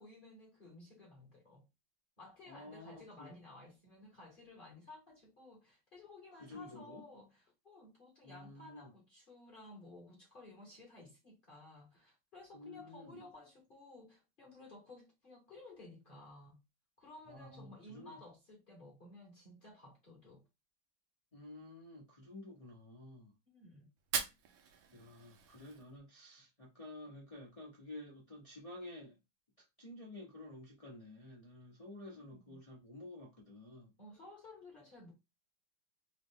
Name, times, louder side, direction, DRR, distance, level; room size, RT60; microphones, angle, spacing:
voice 1, 0.0-1.6 2.2-16.6 17.0-20.5 23.5-23.9 32.2-32.6 34.0-35.1, left 2 dB, 35° left, 0.9 m, -55 dB
voice 2, 2.4-3.3 6.4-7.0 8.2-8.9 12.5-13.3 17.3-18.2 21.3-23.3 24.9-29.2 29.8-33.9, left 1 dB, 55° left, 0.4 m, -51 dB
Fire, 24.0-26.0, right 7 dB, 75° right, 1.3 m, -41 dB
3.6 x 2.0 x 3.6 m
omnidirectional pair, 2.3 m